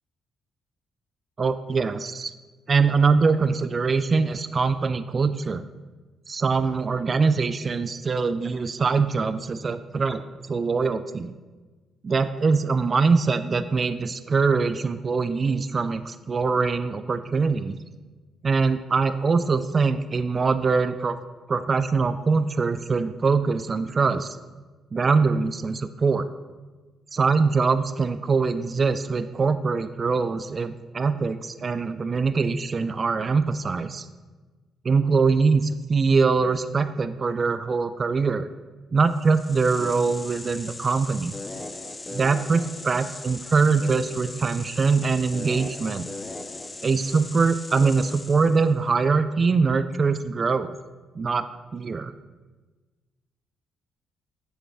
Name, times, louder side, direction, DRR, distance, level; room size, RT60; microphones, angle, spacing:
voice 1, 1.4-2.3 2.7-5.6 6.3-11.3 12.0-17.8 18.4-21.2 21.5-24.4 24.9-26.3 27.1-34.1 34.8-38.5 38.9-41.3 42.1-46.0 46.8-50.8 51.2-51.5 51.7-52.1, right 4 dB, 40° right, 12 dB, 0.3 m, -23 dB
sound 1, 39.1-48.7, left 2 dB, 20° left, 0.5 m, -38 dB
7.4 x 6.5 x 3.3 m, 1.3 s
cardioid pair, 90°, 0 cm